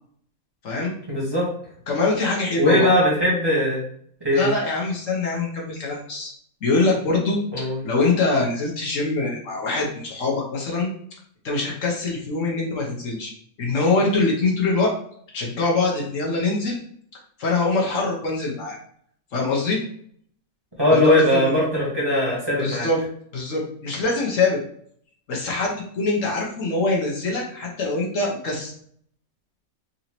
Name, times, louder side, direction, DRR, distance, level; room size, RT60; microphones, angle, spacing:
voice 1, 1.1-1.5 2.6-3.8 4.2-4.5 7.5-7.8 20.8-22.9, left 1 dB, 20° right, -6 dB, 1.2 m, -19 dB
voice 2, 1.9-2.9 4.3-6.3 6.6-10.9 11.4-13.3 13.6-14.9 15.3-16.8 17.4-18.8 19.3-19.8 20.9-21.6 22.6-23.0 23.3-24.6 25.3-28.7, left 3 dB, 65° left, -2 dB, 1.2 m, -23 dB
3.9 x 2.7 x 2.9 m, 0.63 s
omnidirectional pair, 1.5 m